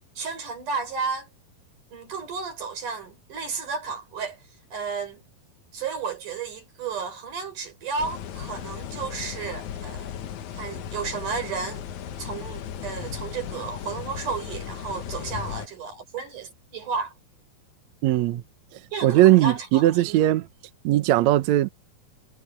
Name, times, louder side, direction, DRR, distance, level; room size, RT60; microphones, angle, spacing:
voice 1, 0.2-1.3 1.9-4.4 4.7-5.2 5.7-10.1 10.5-11.9 12.2-17.1 18.9-20.2, right 5 dB, 55° right, 6.2 m, -33 dB
sound 1, 8.0-15.7, left 9 dB, 65° left, 2.2 m, -36 dB
voice 2, 18.0-18.4 18.7-20.5 20.8-21.7, right 14 dB, 75° right, 1.6 m, -19 dB
omnidirectional pair, 4.4 m